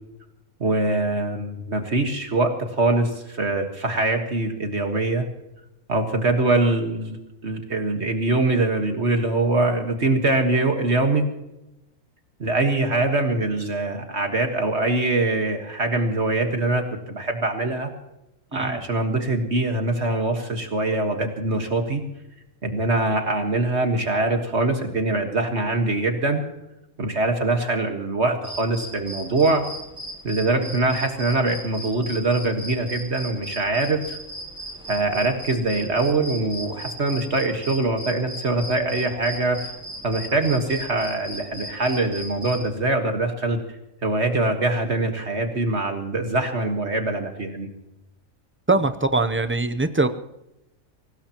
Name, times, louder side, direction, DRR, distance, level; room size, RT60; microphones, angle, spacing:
voice 1, 0.6-5.3 5.9-11.3 12.4-17.9 18.5-22.0 22.6-26.4 27.0-29.6 30.2-34.2 34.9-39.7 40.0-43.6 44.0-47.7, right 2 dB, 55° right, 4 dB, 1.8 m, -23 dB
voice 2, 18.5-18.8 48.7-50.1, right 3 dB, 20° right, 10 dB, 0.3 m, -22 dB
sound 1, 28.4-42.7, equal, 5° right, 5.1 m, -37 dB
23.5 x 18.5 x 3.0 m, 0.90 s
omnidirectional pair, 1.4 m